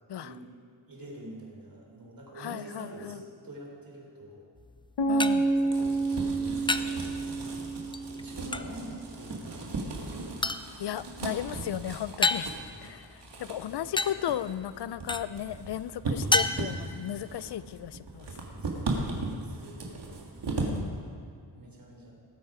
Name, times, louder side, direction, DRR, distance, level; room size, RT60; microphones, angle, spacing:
voice 1, 0.1-0.4 0.9-4.4 5.1-7.0 8.2-10.5 10.8-11.0 12.5-13.4 13.7-14.0 15.1-15.2 18.4-20.0 20.4-21.1 21.5-22.1, right 1 dB, 50° right, -1 dB, 3.9 m, -47 dB
voice 2, 2.4-3.2 5.1-5.5 10.8-12.5 12.8-18.4 20.5-21.1, left 11 dB, 65° left, 16 dB, 0.6 m, -35 dB
sound 1, 4.6-18.9, left 2 dB, 10° left, 0.5 m, -35 dB
sound 2, 5.0-8.9, right 3 dB, 85° left, 1.3 m, -29 dB
sound 3, 5.4-20.8, right 3 dB, 70° right, 2.0 m, -37 dB
19.0 x 8.0 x 5.0 m, 2.3 s
cardioid pair, 70°, 43 cm